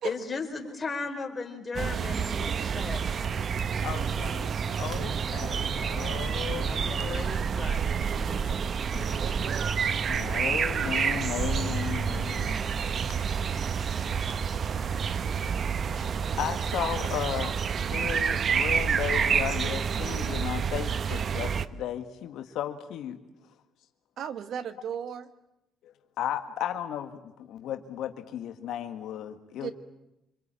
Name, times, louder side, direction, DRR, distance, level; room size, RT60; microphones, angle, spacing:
voice 1, 0.0-3.6 6.6-9.1, left 4 dB, 30° left, 5 dB, 4.3 m, -37 dB
sound 1, 1.7-21.6, right 6 dB, 50° right, 1.0 m, -29 dB
voice 2, 3.8-7.3 10.1-12.7 15.9-16.1 16.4-17.6 17.9-23.2 25.8-29.7, left 10 dB, 75° left, 8 dB, 1.7 m, -35 dB
voice 3, 9.1-9.8 24.2-25.3 29.5-29.7, right 8 dB, 65° right, 12 dB, 1.5 m, -36 dB
26.5 x 21.5 x 9.0 m, 0.91 s
cardioid pair, 85°, 0 cm